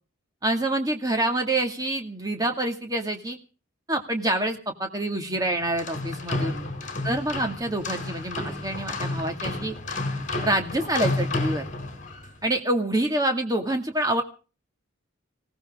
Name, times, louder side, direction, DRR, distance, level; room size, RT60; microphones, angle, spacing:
voice 1, 0.4-3.4 3.9-6.6 7.0-9.7 10.4-11.6 12.4-14.2, right 1 dB, 20° right, 4 dB, 2.1 m, -26 dB
sound 1, 5.6-12.3, left 2 dB, 35° left, 4.4 m, -31 dB
20.5 x 17.5 x 3.7 m, 0.37 s
head